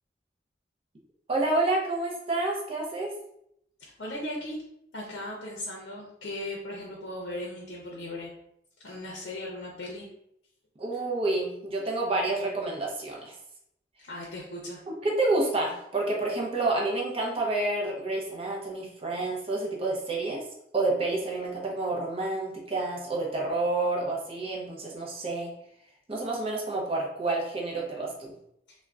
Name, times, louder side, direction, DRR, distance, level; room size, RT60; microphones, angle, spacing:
voice 1, 1.3-3.1 10.8-13.3 14.9-20.4 20.7-25.5 26.1-28.3, right 2 dB, 35° right, -2 dB, 0.5 m, -29 dB
voice 2, 3.8-4.6 4.9-8.3 8.8-10.1 14.0-14.8, left 1 dB, 75° left, -2 dB, 0.5 m, -37 dB
3.4 x 2.1 x 2.3 m, 0.75 s
head